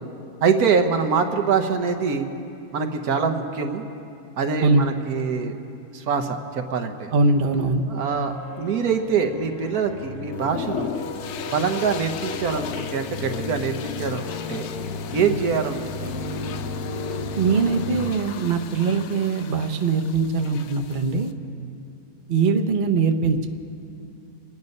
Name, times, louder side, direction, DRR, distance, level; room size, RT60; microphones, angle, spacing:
voice 1, 0.4-2.3 2.7-3.8 4.4-5.6 5.9-7.1 7.9-10.9 11.5-14.2 14.5-14.7 15.1-16.1, right 6 dB, 80° right, 6 dB, 1.5 m, -24 dB
voice 2, 7.1-7.8 17.3-21.3 22.3-23.5, right 4 dB, 45° right, 4 dB, 0.8 m, -21 dB
sound 1, 8.0-18.1, left 4 dB, 85° left, 1.4 m, -34 dB
sound 2, 10.3-21.3, left 7 dB, 60° left, 0.8 m, -37 dB
26.5 x 9.4 x 5.4 m, 2.6 s
omnidirectional pair, 1.6 m